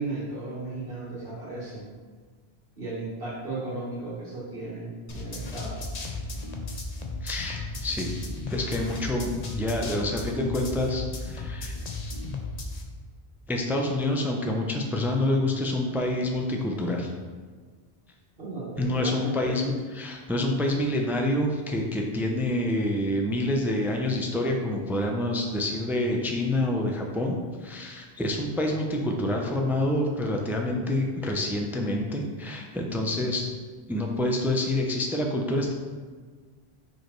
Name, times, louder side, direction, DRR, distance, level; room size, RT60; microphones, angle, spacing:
voice 1, 0.0-1.9 2.8-5.8 18.4-19.6, right 2 dB, 65° right, -9 dB, 2.0 m, -35 dB
sound 1, 5.1-12.8, left 2 dB, 45° left, 0.7 m, -35 dB
voice 2, 7.2-8.1 8.5-11.7 13.5-17.1 18.8-33.5 33.9-35.7, left 1 dB, ahead, 1 dB, 0.5 m, -27 dB
5.3 x 4.7 x 4.5 m, 1.5 s
omnidirectional pair, 1.0 m